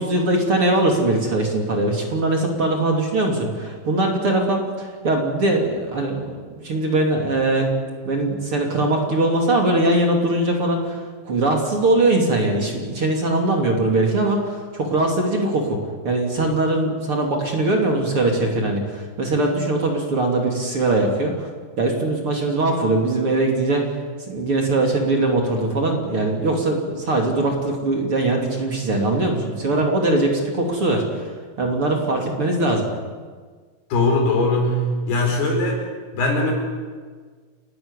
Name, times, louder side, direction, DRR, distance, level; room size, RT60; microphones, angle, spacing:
voice 1, 0.0-6.4 6.6-7.7 8.0-15.8 16.0-21.5 21.8-23.8 24.3-31.2 31.6-32.9, right 2 dB, 35° right, 1 dB, 3.2 m, -21 dB
voice 2, 33.9-35.8 36.1-36.5, left 2 dB, 80° left, 1 dB, 6.7 m, -20 dB
29.5 x 12.5 x 9.8 m, 1.5 s
omnidirectional pair, 4.5 m